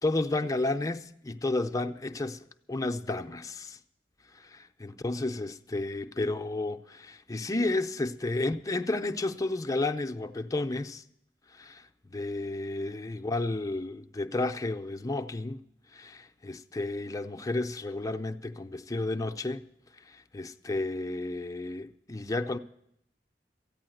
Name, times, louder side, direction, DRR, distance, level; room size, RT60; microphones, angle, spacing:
voice 1, 0.0-3.8 4.3-11.0 11.5-15.6 15.9-19.6 19.9-22.6, left 2 dB, 20° left, 0.5 m, -32 dB
14.0 x 9.5 x 7.8 m
head